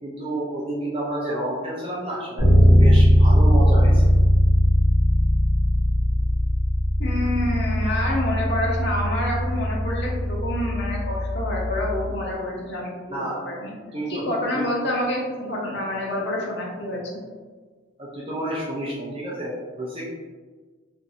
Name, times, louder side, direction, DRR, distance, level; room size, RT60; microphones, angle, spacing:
voice 1, 0.0-4.1 13.1-13.4 13.9-14.2 14.5-14.6 18.0-20.1, right 1 dB, 30° right, -5 dB, 0.4 m, -30 dB
Bass guitar, 2.4-12.2, equal, 20° left, 1.2 m, -19 dB
voice 2, 7.0-13.7 14.1-17.2, left 1 dB, 55° left, -3 dB, 0.8 m, -28 dB
3.1 x 2.5 x 2.7 m, 1.4 s
head